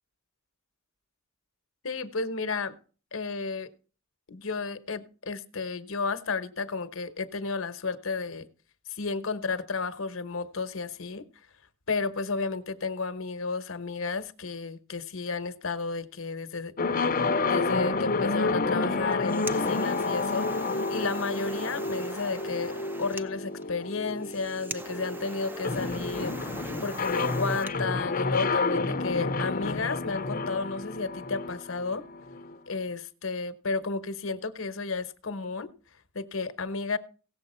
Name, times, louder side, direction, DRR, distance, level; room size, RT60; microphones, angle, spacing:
voice 1, 1.8-2.7 3.1-3.7 4.3-8.5 8.9-11.2 11.9-16.7 17.5-22.7 23.0-26.3 26.8-32.0 32.7-35.7 36.1-37.0, left 4 dB, 70° left, 1.1 m, -32 dB
sound 1, 16.8-32.5, left 3 dB, 45° left, 0.8 m, -30 dB
sound 2, 19.0-27.8, right 1 dB, 10° right, 0.7 m, -42 dB
17.0 x 7.5 x 4.3 m
head